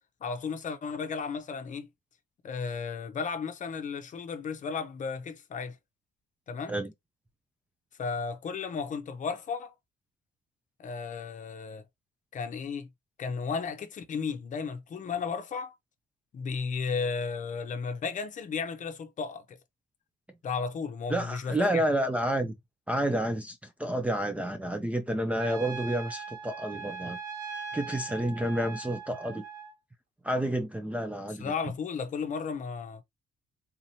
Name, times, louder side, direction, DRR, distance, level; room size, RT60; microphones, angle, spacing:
voice 1, 0.2-1.9 2.4-5.8 6.5-6.7 8.0-9.7 10.8-11.8 12.3-12.9 13.2-15.7 16.3-19.6 20.4-21.8 31.3-33.0, left 5 dB, 45° left, 0.7 m, -34 dB
voice 2, 21.1-22.5 22.9-27.2 27.7-29.4 30.2-31.5, right 1 dB, 5° right, 0.4 m, -30 dB
Trumpet, 25.4-29.7, right 5 dB, 80° right, 1.2 m, -40 dB
3.8 x 2.9 x 2.8 m
cardioid pair, 150°, 18 cm